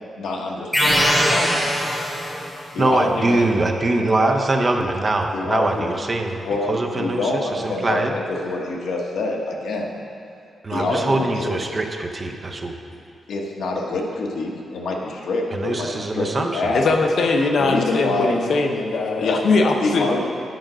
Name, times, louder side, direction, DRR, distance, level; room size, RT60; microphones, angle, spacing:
voice 1, 0.2-1.8 2.7-3.5 4.2-4.3 5.3-6.0 6.4-10.0 10.7-11.6 13.3-16.9 17.6-18.4 19.2-19.4 19.8-20.3, left 2 dB, 85° left, -1 dB, 1.1 m, -26 dB
sound 1, 0.7-2.6, equal, 5° left, 1.0 m, -20 dB
voice 2, 2.8-8.1 10.6-12.7 15.5-16.7, right 2 dB, 25° right, 3 dB, 0.6 m, -23 dB
voice 3, 16.7-20.3, left 3 dB, 60° left, 3 dB, 0.8 m, -20 dB
9.3 x 5.1 x 6.2 m, 2.5 s
wide cardioid pair, 135°, 0 cm